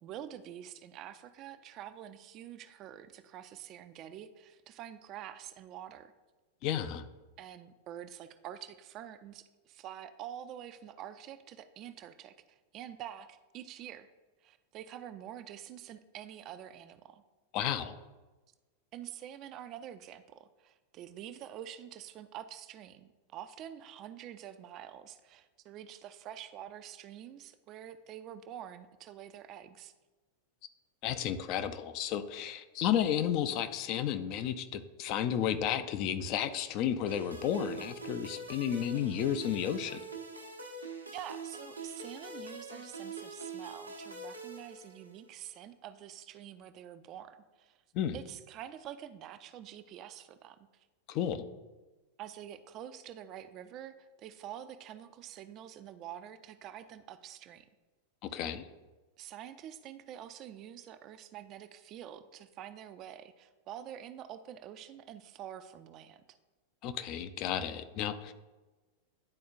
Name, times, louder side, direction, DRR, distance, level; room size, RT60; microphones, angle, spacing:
voice 1, 0.0-6.1 7.4-14.1 14.4-17.2 18.9-29.9 41.1-47.8 48.1-50.9 52.2-57.7 59.2-66.4, right 10 dB, 35° right, 11 dB, 0.4 m, -47 dB
voice 2, 6.6-7.0 17.5-18.0 31.0-40.0 47.9-48.2 51.1-51.4 58.3-58.6 66.8-68.3, left 9 dB, 40° left, 10 dB, 0.4 m, -32 dB
sound 1, 37.1-45.3, right 3 dB, 85° right, 0.8 m, -44 dB
10.5 x 4.2 x 2.4 m, 1.2 s
figure-of-eight pair, 90°, 0 cm